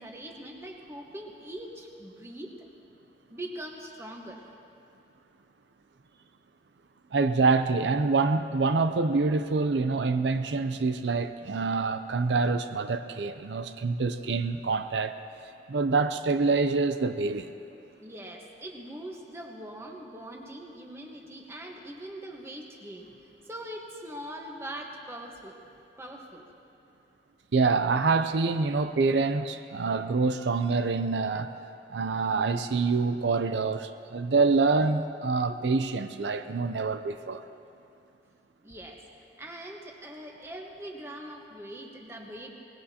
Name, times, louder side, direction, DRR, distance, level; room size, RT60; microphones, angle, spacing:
voice 1, 0.0-2.7 3.3-4.5 18.0-23.1 23.5-25.6 26.0-26.5 35.5-35.8 38.6-39.0 39.4-42.5, right 1 dB, 15° right, 1 dB, 1.3 m, -42 dB
voice 2, 7.1-15.2 15.7-17.5 27.5-31.5 31.9-37.4, right 4 dB, 85° right, 9 dB, 0.5 m, -26 dB
23.5 x 19.5 x 2.9 m, 2.6 s
head